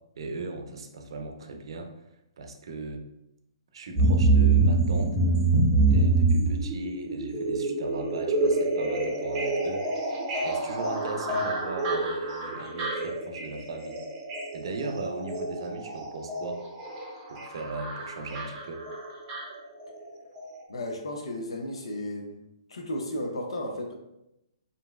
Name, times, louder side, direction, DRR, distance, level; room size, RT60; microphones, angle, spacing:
voice 1, 0.2-1.9 2.4-3.0 3.7-5.2 5.9-10.1 10.4-14.0 14.5-16.6 17.3-18.8, right 3 dB, 65° right, 5 dB, 0.5 m, -38 dB
sound 1, 4.0-20.1 20.4-20.5, right 3 dB, 25° right, 0.6 m, -26 dB
voice 2, 20.7-22.4 22.7-23.9, left 1 dB, 80° left, 3 dB, 0.6 m, -34 dB
2.9 x 2.6 x 2.3 m, 0.86 s
hypercardioid pair, 140°, 3 cm